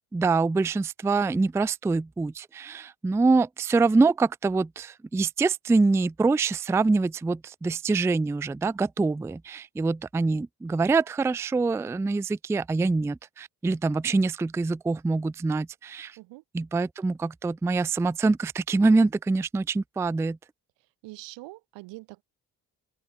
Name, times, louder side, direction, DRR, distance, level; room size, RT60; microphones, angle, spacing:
voice 1, 0.1-16.2 16.5-20.4, right 3 dB, 5° right, 0.3 m, -25 dB
voice 2, 21.0-22.2, right 21 dB, 85° right, 2.4 m, -43 dB
open air
hypercardioid pair, 45°, 42 cm